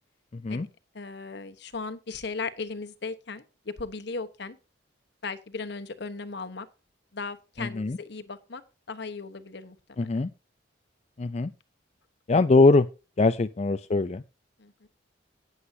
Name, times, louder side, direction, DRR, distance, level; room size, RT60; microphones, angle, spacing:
voice 1, 0.3-0.7 7.6-8.0 10.0-10.3 11.2-11.5 12.3-12.9 13.2-14.2, left 3 dB, 35° left, 10 dB, 0.4 m, -22 dB
voice 2, 0.9-4.6 5.2-6.7 7.1-8.6 8.9-10.1 14.6-14.9, left 4 dB, 60° left, 10 dB, 1.1 m, -37 dB
18.0 x 7.9 x 2.7 m, 0.31 s
head